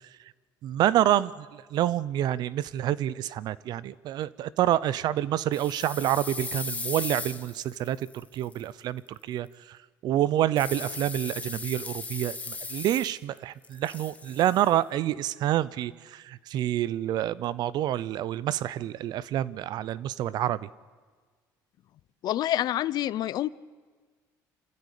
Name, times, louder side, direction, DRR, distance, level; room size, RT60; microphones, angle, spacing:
voice 1, 0.6-8.0 8.3-9.8 10.0-20.7, right 12 dB, 65° right, 0.7 m, -28 dB
sound 1, 5.5-8.6 10.6-13.4 13.6-14.7, left 3 dB, 20° left, 1.5 m, -37 dB
voice 2, 22.2-23.5, left 13 dB, 60° left, 0.6 m, -27 dB
26.0 x 15.0 x 8.4 m
cardioid pair, 105°, 8 cm